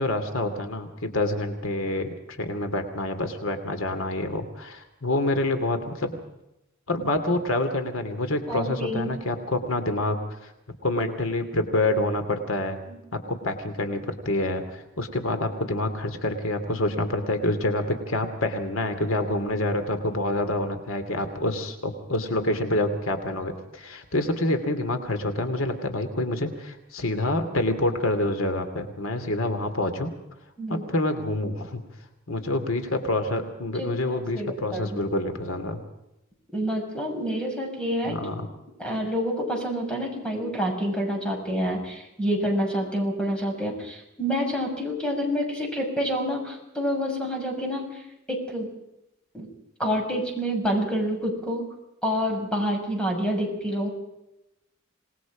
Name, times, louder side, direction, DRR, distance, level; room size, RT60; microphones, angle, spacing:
voice 1, 0.0-6.2 6.9-10.5 10.8-12.8 13.1-30.1 30.7-31.8 32.3-35.8 38.0-38.5, left 1 dB, 85° left, 7 dB, 2.7 m, -27 dB
voice 2, 8.5-9.1 12.9-13.0 30.6-30.9 33.8-33.9 34.3-35.0 36.5-38.2 38.8-48.0 48.3-48.7 49.3-49.5 49.8-51.6 52.0-53.9, equal, 5° left, 1 dB, 6.6 m, -28 dB
27.5 x 20.0 x 5.1 m, 0.90 s
head